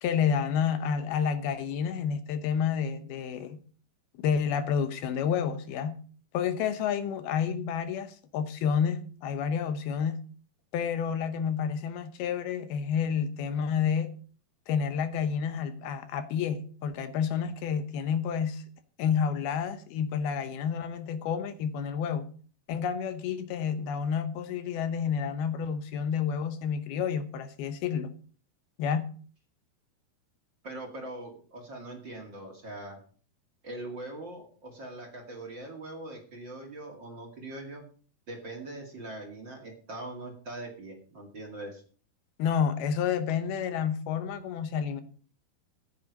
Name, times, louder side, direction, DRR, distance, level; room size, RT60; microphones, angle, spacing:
voice 1, 0.0-3.6 4.2-6.0 6.3-10.2 10.7-14.1 14.7-18.6 19.0-22.3 22.7-28.1 28.8-29.1 42.4-45.0, left 7 dB, 80° left, 2.9 m, -29 dB
voice 2, 30.6-33.0 33.6-37.8 38.3-41.8, right 2 dB, 35° right, 2.6 m, -41 dB
14.5 x 8.5 x 5.3 m
omnidirectional pair, 4.5 m